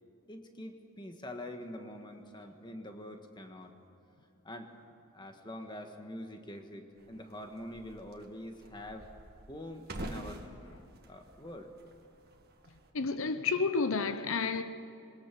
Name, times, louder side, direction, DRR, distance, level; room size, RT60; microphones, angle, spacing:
voice 1, 0.3-3.7 4.4-4.7 5.1-9.1 9.5-10.4 11.1-11.7, left 1 dB, 20° left, 1.6 m, -45 dB
sound 1, 7.0-12.9, right 1 dB, 45° right, 1.8 m, -48 dB
voice 2, 12.9-14.6, left 4 dB, 75° left, 0.8 m, -30 dB
22.0 x 20.0 x 6.1 m
head